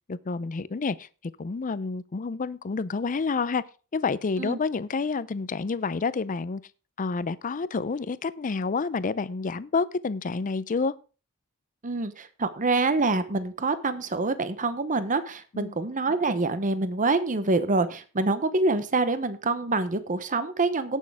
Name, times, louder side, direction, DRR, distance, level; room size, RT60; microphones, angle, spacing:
voice 1, 0.1-1.1 1.4-3.6 3.9-6.6 7.0-10.9 15.5-15.8, left 4 dB, 35° left, 0.5 m, -29 dB
voice 2, 11.8-21.0, right 3 dB, 35° right, 0.9 m, -26 dB
17.5 x 6.4 x 3.5 m
head